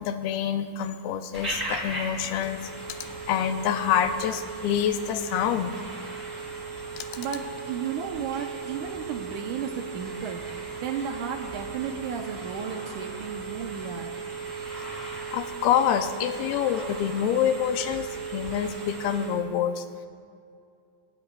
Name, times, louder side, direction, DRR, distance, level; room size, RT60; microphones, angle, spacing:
voice 1, 0.0-2.7 3.3-5.8 7.0-7.1 15.3-19.9, left 9 dB, 85° left, 8 dB, 2.6 m, -26 dB
Telephone, 1.3-19.4, right 4 dB, 10° right, 1.4 m, -37 dB
voice 2, 7.2-14.2, right 7 dB, 75° right, 3 dB, 2.0 m, -34 dB
27.0 x 16.5 x 2.4 m, 2.4 s
omnidirectional pair, 4.4 m